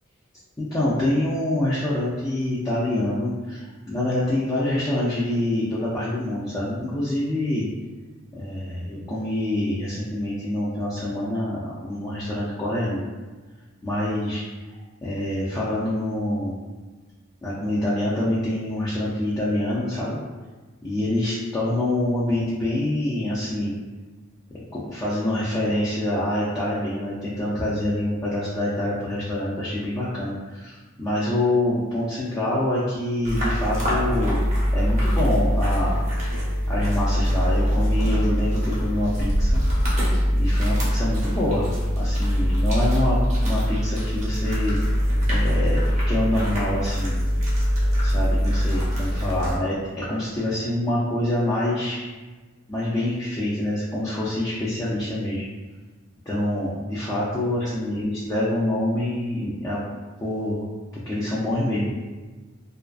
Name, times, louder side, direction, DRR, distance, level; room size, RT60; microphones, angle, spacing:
voice 1, 0.6-7.7 8.3-13.1 13.8-14.4 15.0-16.6 17.4-20.2 20.8-23.7 24.7-36.0 36.7-39.6 40.3-44.8 45.3-45.8 46.1-47.2 48.0-52.0 52.7-55.4 56.3-59.8 60.2-60.7 61.1-61.9, left 1 dB, 15° left, -9 dB, 0.3 m, -26 dB
sound 1, 33.2-49.5, equal, 35° right, 0.6 m, -22 dB
2.3 x 2.3 x 2.3 m, 1.3 s
head